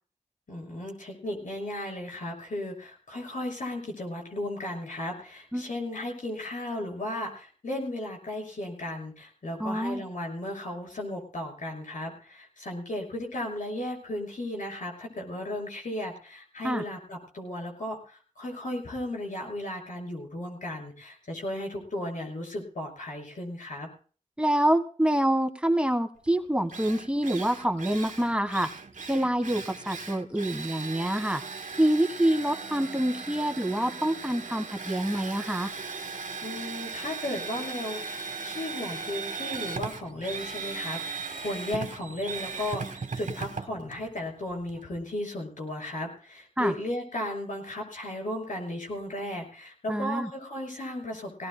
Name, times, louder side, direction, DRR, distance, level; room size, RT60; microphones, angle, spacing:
voice 1, 0.5-23.9 36.4-51.5, left 1 dB, 85° left, 1 dB, 6.4 m, -35 dB
voice 2, 9.6-10.0 16.6-16.8 24.4-28.7 29.1-31.4 31.8-35.7 46.6-46.7 49.9-50.3, right 1 dB, 10° right, 6 dB, 1.4 m, -26 dB
Drill, 26.3-26.4 26.7-44.8, right 5 dB, 80° right, 1.3 m, -38 dB
22.5 x 18.0 x 2.2 m, 0.40 s
cardioid pair, 50°, 13 cm